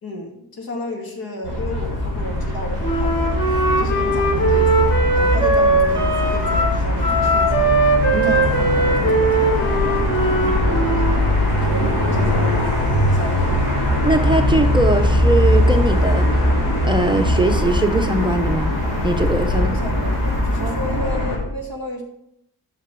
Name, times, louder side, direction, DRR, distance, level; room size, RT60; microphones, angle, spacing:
voice 1, 0.0-7.7 8.1-11.2 11.7-13.6 19.5-22.0, left 1 dB, 65° left, 2 dB, 2.3 m, -32 dB
sound 1, 1.4-21.4, left 1 dB, 90° left, 3.8 m, -20 dB
sound 2, 2.2-20.4, right 1 dB, 45° left, 3.8 m, -38 dB
Wind instrument woodwind instrument, 2.8-11.2, right 2 dB, 30° left, 2.8 m, -19 dB
voice 2, 14.0-16.4 16.8-18.8 19.0-19.8 20.6-20.8, right 2 dB, 10° right, 4 dB, 0.6 m, -21 dB
8.8 x 6.0 x 6.0 m, 0.77 s
wide cardioid pair, 120°, 38 cm